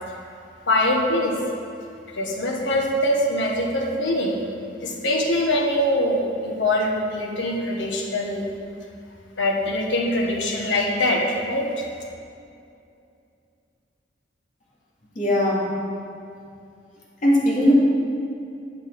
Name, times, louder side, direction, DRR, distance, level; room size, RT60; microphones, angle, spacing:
voice 1, 0.7-1.3 2.2-4.3 4.8-8.4 9.4-11.8, left 1 dB, 75° left, 0 dB, 1.3 m, -23 dB
voice 2, 15.1-15.7 17.2-17.7, equal, 45° left, -6 dB, 2.4 m, -19 dB
9.0 x 6.7 x 4.7 m, 2.5 s
head